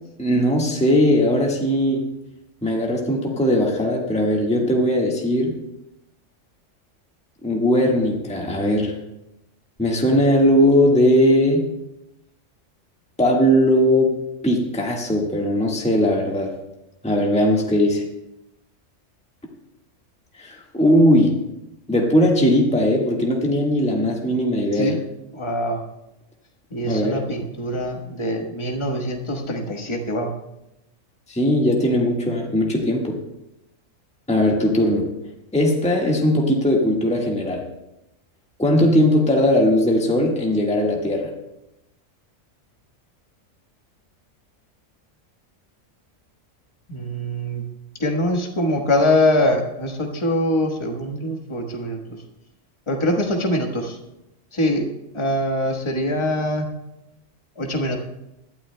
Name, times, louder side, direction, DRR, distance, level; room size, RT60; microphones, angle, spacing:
voice 1, 0.2-2.0 2.6-5.6 7.4-8.9 9.8-11.7 13.2-14.2 14.4-16.6 17.0-18.0 20.4-21.4 21.9-25.0 26.9-27.2 31.3-33.2 34.3-35.1 35.5-37.7 38.6-41.3, equal, 5° left, -1 dB, 1.5 m, -19 dB
voice 2, 25.3-25.8 26.7-30.3 38.8-38.9 46.9-47.6 48.0-52.0 52.9-54.0 54.5-54.9 55.1-56.7 57.6-58.0, left 1 dB, 25° left, 2 dB, 1.3 m, -23 dB
20.5 x 12.5 x 2.2 m, 0.89 s
omnidirectional pair, 1.3 m